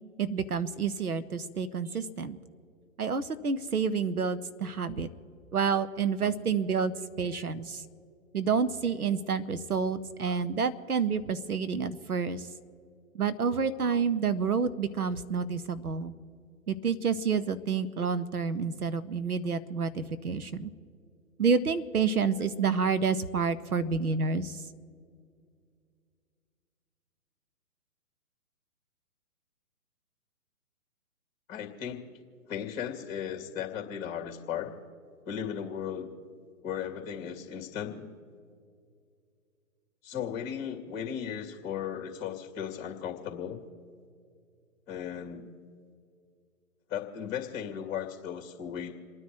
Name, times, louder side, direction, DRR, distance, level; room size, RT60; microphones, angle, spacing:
voice 1, 0.2-2.4 3.0-5.1 5.5-7.8 8.3-12.5 13.1-16.1 16.7-20.7 21.4-24.6, right 5 dB, 85° right, 13 dB, 1.2 m, -29 dB
voice 2, 31.5-32.0 32.5-34.7 35.3-36.1 36.6-38.1 40.0-43.6 44.9-45.5 46.9-49.0, left 8 dB, 25° left, 2 dB, 2.4 m, -36 dB
28.5 x 9.9 x 4.7 m, 2.3 s
hypercardioid pair, 140°, 43 cm